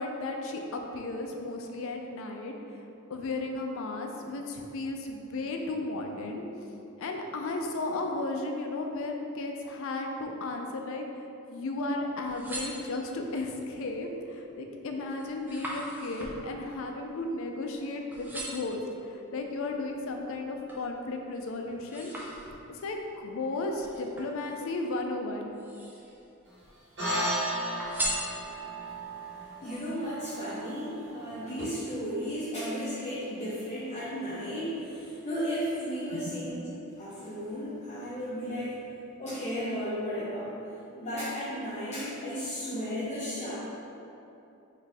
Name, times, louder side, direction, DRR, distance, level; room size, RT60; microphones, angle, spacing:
voice 1, 0.0-2.8 3.1-6.5 7.0-22.1 22.7-25.5 36.1-36.4, left 2 dB, 70° left, 3 dB, 0.4 m, -34 dB
sound 1, 12.1-13.4 13.9-14.4 14.7-17.8 18.1-18.8 19.4-20.9 21.3-22.9 23.8-24.9 25.5-26.3 26.6-27.3 27.8-28.9 29.4-29.5, right 1 dB, 10° right, 0.5 m, -39 dB
sound 2, 27.0-31.6, right 1 dB, 55° right, 1.3 m, -35 dB
voice 2, 29.6-36.7 37.0-38.8 39.2-40.5 41.0-43.6, equal, 35° left, -10 dB, 0.6 m, -34 dB
4.0 x 2.6 x 3.4 m, 2.9 s
head